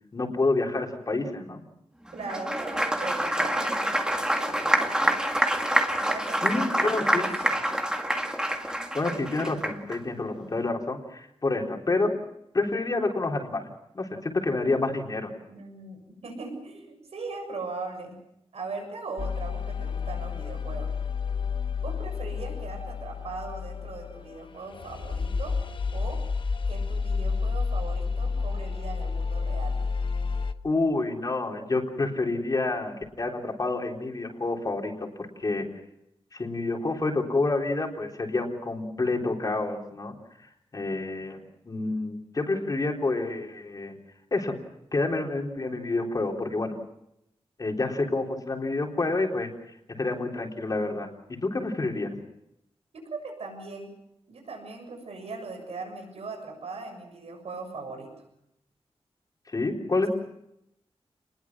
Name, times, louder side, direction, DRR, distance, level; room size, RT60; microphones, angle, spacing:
voice 1, 0.1-1.6 6.4-7.3 9.0-12.1 12.5-13.7 13.9-15.3 30.6-35.1 35.4-35.7 36.3-40.1 40.7-44.0 44.3-44.5 44.9-46.8 47.6-49.5 50.0-51.1 51.4-52.2 59.5-60.1, left 3 dB, 35° left, 1 dB, 3.8 m, -28 dB
voice 2, 2.1-5.3 5.9-7.7 15.5-18.2 18.5-20.9 21.8-25.6 25.9-26.3 26.7-29.8 52.9-53.9 54.3-58.2, right 3 dB, 80° right, 4 dB, 7.1 m, -39 dB
Applause, 2.2-10.0, right 1 dB, 5° right, 2.1 m, -26 dB
sound 1, 19.2-30.5, left 5 dB, 55° left, 1.1 m, -30 dB
29.0 x 21.0 x 6.1 m, 0.80 s
wide cardioid pair, 150°, 10 cm